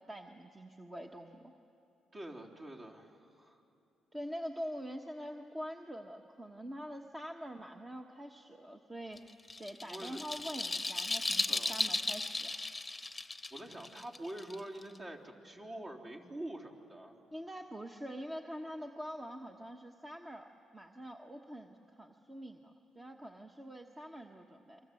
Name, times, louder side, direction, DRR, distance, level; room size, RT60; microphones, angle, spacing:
voice 1, 0.0-1.5 4.1-9.3 9.6-12.5 17.3-24.8, equal, 15° right, 3 dB, 1.3 m, -45 dB
voice 2, 2.1-3.6 9.8-10.2 11.5-11.8 13.5-17.1, right 1 dB, 40° right, -2 dB, 3.8 m, -46 dB
sound 1, 9.2-15.0, left 2 dB, 15° left, 1.1 m, -36 dB
28.5 x 24.5 x 7.8 m, 2.7 s
cardioid pair, 90°, 0 cm